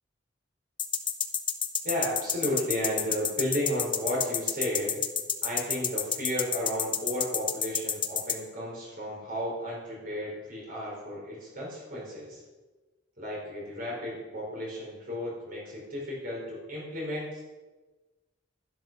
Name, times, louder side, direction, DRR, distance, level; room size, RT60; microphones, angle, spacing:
sound 1, 0.8-8.3, left 8 dB, 25° left, 0.9 m, -28 dB
voice 1, 1.8-5.0 5.4-12.4 13.2-17.4, equal, 50° right, -3 dB, 4.9 m, -33 dB
12.0 x 11.5 x 5.5 m, 1.2 s
head